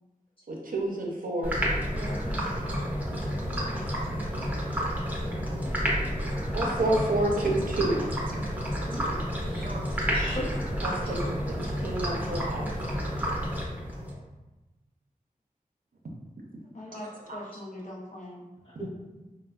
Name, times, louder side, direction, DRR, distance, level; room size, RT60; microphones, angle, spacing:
voice 1, 0.5-1.7 6.5-8.4 9.6-9.8 10.8-12.7, right 1 dB, 75° right, 0 dB, 0.5 m, -29 dB
sound 1, 1.4-14.1, equal, 10° right, 0.6 m, -30 dB
voice 2, 1.9-4.6 5.6-6.1 16.6-18.4, left 1 dB, 55° left, -3 dB, 0.5 m, -44 dB
voice 3, 8.8-9.1 9.4-9.7 10.1-10.5 10.9-11.2 12.4-13.1 18.6-18.9, equal, 35° left, -7 dB, 0.9 m, -39 dB
3.1 x 2.0 x 2.3 m, 1.1 s
wide cardioid pair, 70°, 15 cm